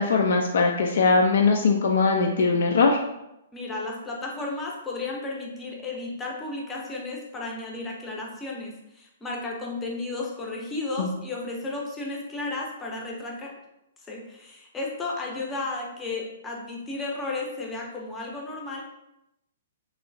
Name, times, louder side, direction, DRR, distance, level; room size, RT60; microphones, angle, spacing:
voice 1, 0.0-3.0 11.0-11.1, left 4 dB, 70° left, 2 dB, 0.3 m, -21 dB
voice 2, 3.5-13.5 14.1-18.8, left 2 dB, 10° left, -1 dB, 0.5 m, -33 dB
3.0 x 2.7 x 2.6 m, 0.85 s
hypercardioid pair, 155°, 0 cm